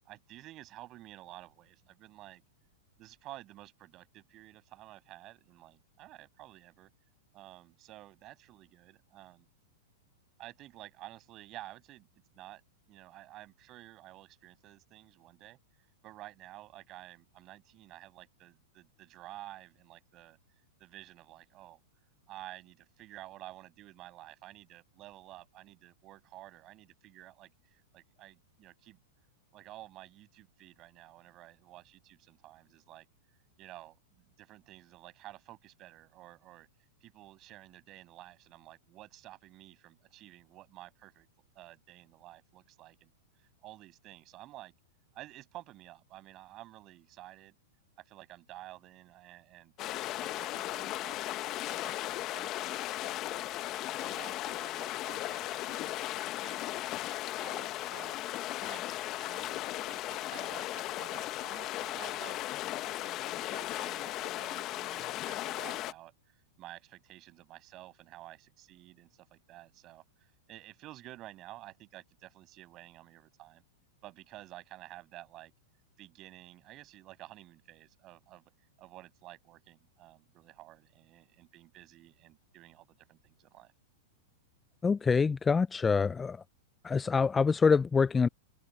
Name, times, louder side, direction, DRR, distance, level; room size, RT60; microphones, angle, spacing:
voice 1, 0.1-2.4 3.0-6.9 7.3-9.5 10.4-12.1 12.3-12.6 12.9-15.6 16.0-20.4 20.8-21.8 22.3-29.0 29.5-33.1 33.6-36.7 37.0-41.3 41.5-43.1 43.6-44.7 45.1-47.5 48.0-49.7 50.2-53.7 54.0-56.8 57.4-58.2 58.6-62.5 62.8-73.6 74.0-75.5 76.0-78.4 78.8-83.7, right 16 dB, 35° right, 7.0 m, -52 dB
sound 1, 49.8-65.9, left 15 dB, 35° left, 1.1 m, -36 dB
voice 2, 84.8-86.4 86.8-88.3, left 5 dB, 15° left, 0.4 m, -26 dB
hypercardioid pair, 130°, 0 cm